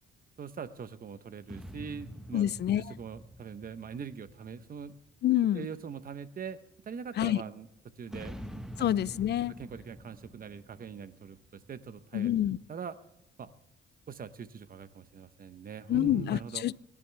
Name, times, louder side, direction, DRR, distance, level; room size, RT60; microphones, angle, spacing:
voice 1, 0.4-2.5 2.8-4.9 5.5-6.6 6.9-7.7 8.0-8.4 8.8-9.2 9.6-11.4 11.7-12.3 12.7-13.0 13.4-13.5 14.1-16.7, right 6 dB, 45° right, 0.9 m, -42 dB
sound 1, 1.5-5.2 8.1-11.9, equal, 5° right, 1.2 m, -46 dB
voice 2, 2.3-2.9 5.2-5.7 7.2-7.4 8.8-9.5 12.1-12.6 15.9-16.8, left 12 dB, 55° left, 0.5 m, -27 dB
25.5 x 11.0 x 3.4 m
cardioid pair, 90°, 20 cm